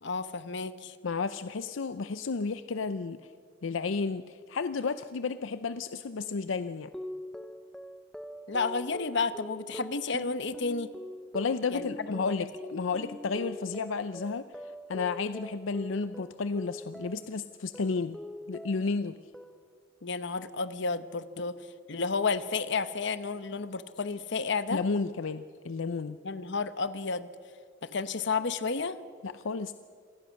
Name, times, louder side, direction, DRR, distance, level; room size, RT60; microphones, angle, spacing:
voice 1, 0.0-1.0 8.5-10.9 11.7-12.5 20.0-24.8 26.2-27.3 27.8-29.0, left 4 dB, 65° left, 13 dB, 1.0 m, -32 dB
voice 2, 1.0-3.2 3.6-6.9 11.3-14.4 14.9-18.2 18.5-19.2 24.7-26.2 29.2-29.7, left 4 dB, 85° left, 12 dB, 0.6 m, -32 dB
sound 1, 6.9-17.4 17.7-19.0 19.3-19.9, equal, ahead, 0.6 m, -43 dB
26.5 x 18.0 x 6.4 m, 2.1 s
head